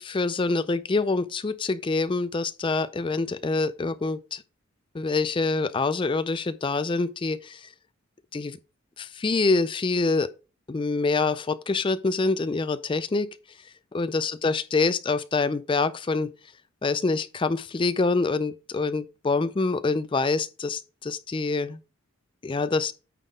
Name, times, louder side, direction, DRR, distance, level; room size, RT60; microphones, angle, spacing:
voice 1, 0.0-4.4 4.9-7.7 8.3-8.6 9.0-10.3 10.7-13.3 13.9-16.3 16.8-21.8 22.4-22.9, left 3 dB, 25° left, 0.3 m, -26 dB
9.1 x 3.9 x 4.9 m
head